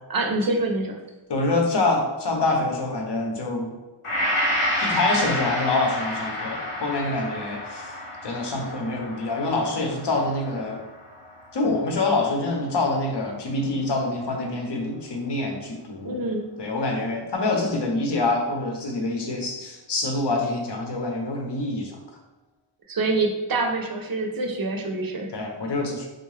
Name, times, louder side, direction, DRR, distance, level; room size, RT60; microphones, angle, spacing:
voice 1, 0.1-1.0 16.0-16.5 22.9-25.3, right 2 dB, 45° right, 3 dB, 0.6 m, -26 dB
voice 2, 1.3-3.7 4.8-7.9 8.2-10.8 11.5-16.2 16.6-22.0 25.3-26.1, left 2 dB, 55° left, 1 dB, 0.8 m, -26 dB
Gong, 4.0-12.4 12.8-12.9, equal, 90° left, 0.9 m, -30 dB
3.7 x 2.3 x 3.2 m, 1.1 s
wide cardioid pair, 75°, 50 cm